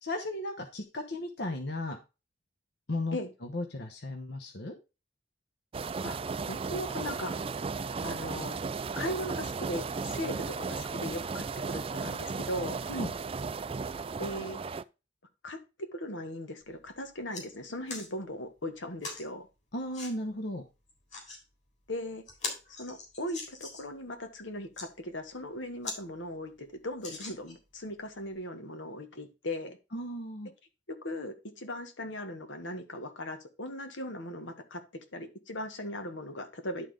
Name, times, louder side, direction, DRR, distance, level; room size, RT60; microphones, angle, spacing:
voice 1, 0.0-2.0 2.9-4.8 10.3-10.4 12.9-13.1 19.7-20.6 29.9-30.5, left 1 dB, 60° left, 4 dB, 1.0 m, -35 dB
sound 1, 5.7-14.8, right 4 dB, 30° right, 0.4 m, -35 dB
voice 2, 6.5-7.4 8.0-8.6 8.9-12.8 14.2-14.6 15.4-19.5 21.9-22.2 22.8-29.8 30.9-36.9, left 1 dB, 85° left, 7 dB, 1.6 m, -38 dB
sound 2, 16.6-16.7 17.1-17.4 17.9-18.1 19.0-19.2 19.9-20.1 20.9-21.4 21.9-22.0 22.3-23.9 24.5-24.9 25.4-25.5 25.8-26.0 26.3-26.4 27.0-27.7 28.3-28.4, left 4 dB, 40° left, 3.7 m, -41 dB
11.5 x 3.8 x 5.0 m, 0.29 s
head